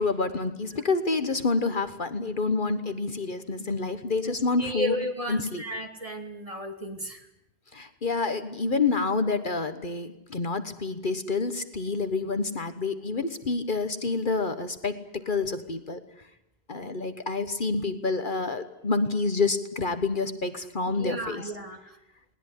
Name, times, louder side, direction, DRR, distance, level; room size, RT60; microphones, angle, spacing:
voice 1, 0.0-4.9 5.3-5.6 7.7-16.0 16.7-21.4, left 3 dB, 50° left, 10 dB, 1.4 m, -28 dB
voice 2, 4.2-7.3 16.8-17.1 20.8-22.0, equal, 35° right, 4 dB, 2.7 m, -34 dB
20.0 x 19.5 x 9.9 m, 0.80 s
omnidirectional pair, 1.1 m